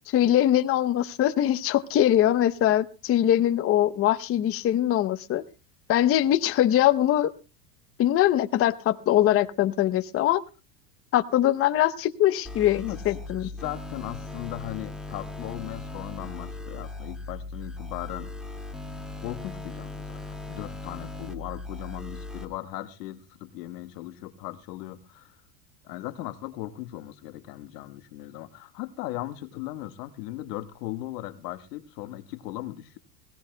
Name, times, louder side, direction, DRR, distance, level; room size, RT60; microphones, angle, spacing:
voice 1, 0.1-5.4 5.9-7.3 8.0-10.4 11.1-13.5, left 12 dB, 30° left, 0.7 m, -22 dB
sound 1, 12.4-22.4, left 2 dB, ahead, 2.1 m, -38 dB
voice 2, 12.8-18.3 19.2-20.2 20.5-25.4 25.8-33.0, left 15 dB, 80° left, 1.4 m, -38 dB
21.0 x 16.5 x 2.2 m
supercardioid pair, 125°, 47 cm